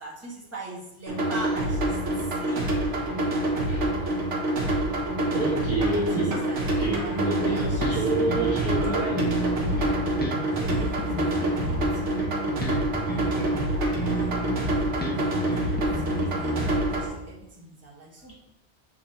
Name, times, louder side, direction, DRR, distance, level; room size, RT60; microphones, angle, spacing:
voice 1, 0.0-2.8 5.9-8.3 10.1-14.4 14.8-16.6 16.9-18.3, right 2 dB, 15° right, -5 dB, 1.4 m, -43 dB
sound 1, 1.1-17.1, right 1 dB, 80° right, 1.6 m, -26 dB
voice 2, 3.7-4.2 5.3-9.3, right 3 dB, 35° right, -7 dB, 1.3 m, -29 dB
Bass guitar, 7.4-8.8 9.2-13.6 14.0-17.0, right 1 dB, 10° left, 0.9 m, -32 dB
7.2 x 3.4 x 4.3 m, 0.89 s
omnidirectional pair, 1.2 m